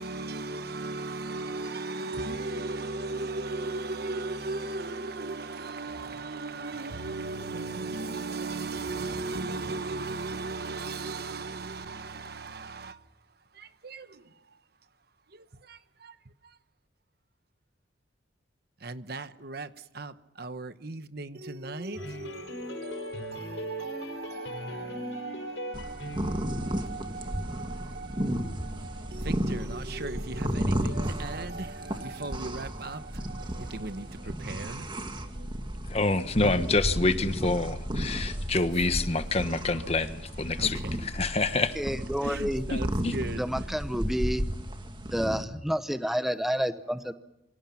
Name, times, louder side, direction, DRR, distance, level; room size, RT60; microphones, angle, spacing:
voice 1, 0.0-12.9 13.9-14.0 18.8-19.7 20.0-20.1 20.4-26.2 26.4-27.7 28.0-28.3 29.1-33.0 33.7-34.1 34.4-34.8 40.6-40.7 42.2-42.9 43.1-43.4, right 3 dB, 55° right, 1.1 m, -36 dB
sound 1, 21.9-26.6, equal, 85° left, 5.4 m, -39 dB
sound 2, 25.7-45.4, equal, 25° right, 1.9 m, -33 dB
voice 2, 35.9-40.8 41.1-41.8 42.7-42.8 43.0-43.1, left 3 dB, 35° left, 1.3 m, -27 dB
voice 3, 41.8-42.6 43.3-44.4 45.1-47.1, equal, ahead, 1.0 m, -29 dB
27.5 x 24.5 x 5.9 m
head